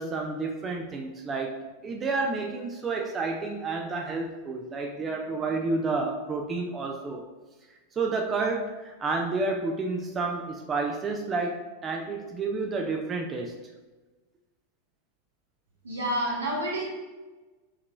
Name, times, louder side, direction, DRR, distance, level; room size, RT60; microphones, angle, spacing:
voice 1, 0.0-7.2 8.0-13.5, right 3 dB, 20° right, 2 dB, 0.4 m, -30 dB
voice 2, 15.8-16.8, right 1 dB, 70° right, -3 dB, 1.2 m, -29 dB
6.7 x 2.9 x 2.2 m, 1.2 s
figure-of-eight pair, 90°, 0 cm